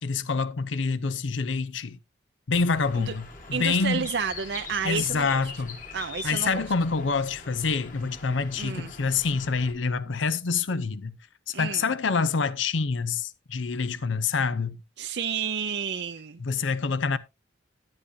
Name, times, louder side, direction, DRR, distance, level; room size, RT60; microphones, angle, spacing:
voice 1, 0.0-2.0 2.5-4.1 4.8-5.8 6.2-11.2 11.6-14.8 16.4-17.2, left 4 dB, 80° left, 0.7 m, -26 dB
Bird, 2.5-9.7, left 4 dB, 45° left, 1.9 m, -43 dB
voice 2, 3.5-5.4 5.9-6.6 8.6-8.9 11.5-11.9 15.0-16.4, right 6 dB, 60° right, 0.5 m, -30 dB
10.5 x 9.7 x 2.7 m
head